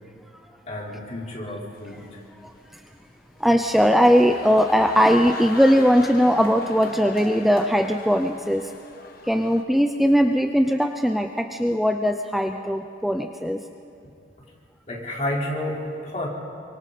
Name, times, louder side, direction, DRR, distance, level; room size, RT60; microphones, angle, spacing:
voice 1, 0.7-2.0 14.9-16.3, left 1 dB, 40° left, -3 dB, 4.3 m, -30 dB
sound 1, 1.7-9.6, left 3 dB, 55° left, 1.7 m, -41 dB
voice 2, 3.4-8.7 9.3-13.6, equal, ahead, 4 dB, 0.6 m, -20 dB
28.5 x 24.5 x 4.3 m, 2.5 s
head